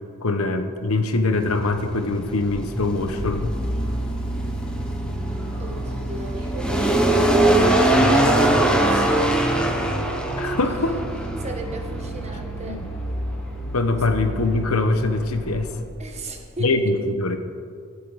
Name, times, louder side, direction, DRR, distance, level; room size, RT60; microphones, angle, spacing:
voice 1, 0.2-3.6 10.4-10.9 12.7-12.8 13.7-15.7 16.6-17.4, left 2 dB, 75° left, 7 dB, 1.1 m, -23 dB
sound 1, 1.3-15.8, right 1 dB, 5° left, 1.1 m, -23 dB
sound 2, 1.8-16.3, right 1 dB, 60° left, 1.8 m, -33 dB
sound 3, 3.8-10.3, right 1 dB, 70° right, 1.6 m, -41 dB
voice 2, 5.6-6.7 7.9-9.3 10.6-11.0 11.4-12.8 16.0-16.7, right 1 dB, 30° right, 3 dB, 1.5 m, -37 dB
24.0 x 8.3 x 4.1 m, 2.2 s
head